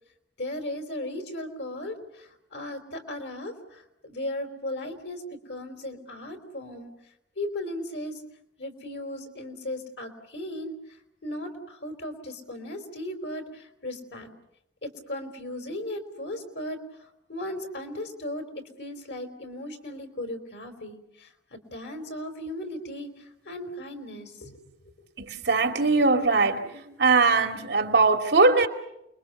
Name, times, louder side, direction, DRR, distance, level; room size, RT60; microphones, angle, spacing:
voice 1, 0.4-6.9 7.4-8.2 8.6-10.7 11.2-14.3 14.8-16.8 17.3-18.5 18.8-24.6, left 1 dB, 85° left, 4.3 m, -36 dB
voice 2, 25.2-26.6 27.0-28.7, right 3 dB, 70° right, 2.8 m, -21 dB
29.5 x 22.5 x 6.9 m
head